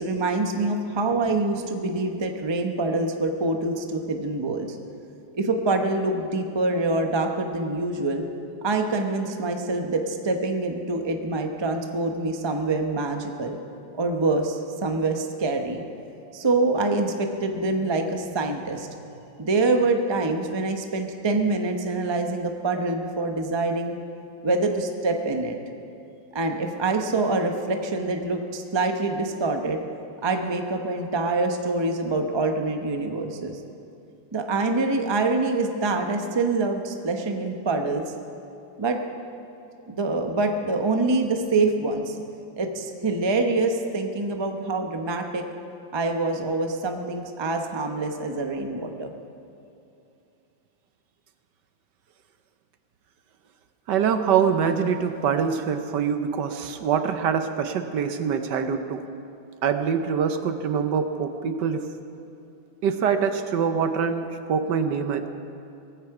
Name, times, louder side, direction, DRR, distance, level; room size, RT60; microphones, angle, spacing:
voice 1, 0.0-4.7 5.3-8.2 8.6-13.6 14.0-15.8 16.3-18.9 19.4-23.9 24.4-25.6 26.3-29.8 30.2-33.6 34.3-38.0 38.8-39.0 39.9-42.2 42.6-45.4 45.9-49.1, right 3 dB, 30° right, 4 dB, 0.5 m, -25 dB
voice 2, 53.9-59.0 59.6-61.8 62.8-65.3, right 7 dB, 70° right, 8 dB, 1.3 m, -24 dB
17.5 x 15.5 x 4.8 m, 2.6 s
omnidirectional pair, 2.1 m